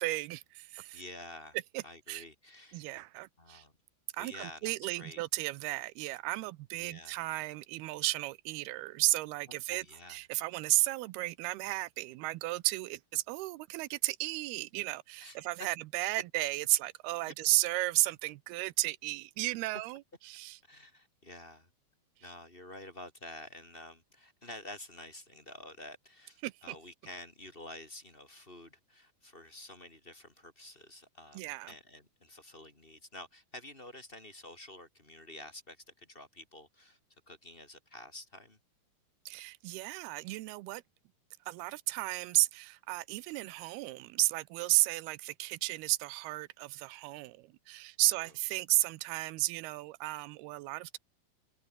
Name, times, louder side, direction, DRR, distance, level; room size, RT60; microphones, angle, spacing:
voice 1, 0.0-1.0 1.7-2.2 2.7-3.6 4.1-20.6 26.4-26.8 31.3-31.7 39.3-40.8 41.5-51.0, right 19 dB, 80° right, 2.6 m, -33 dB
voice 2, 0.9-1.6 1.8-2.9 3.4-3.7 4.2-5.2 6.7-7.2 9.7-10.2 15.2-15.4 17.3-17.4 20.6-21.7 22.2-31.4 31.7-37.0 37.3-38.6 48.0-48.3, left 1 dB, 15° left, 3.0 m, -49 dB
omnidirectional pair, 4.7 m